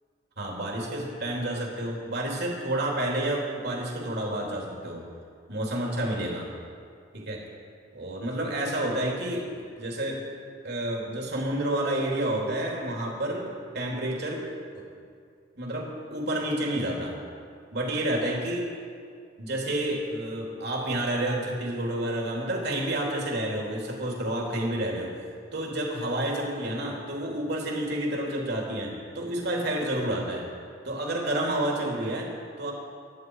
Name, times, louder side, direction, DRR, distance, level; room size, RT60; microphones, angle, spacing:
voice 1, 0.4-5.0 5.5-6.5 7.1-7.4 7.9-10.2 10.6-14.5 14.7-14.8 15.6-17.2 17.7-18.6 19.4-25.1 25.5-30.5 30.8-32.3 32.6-32.7, right 1 dB, 60° right, -2 dB, 3.2 m, -29 dB
24.0 x 10.5 x 4.8 m, 2.3 s
head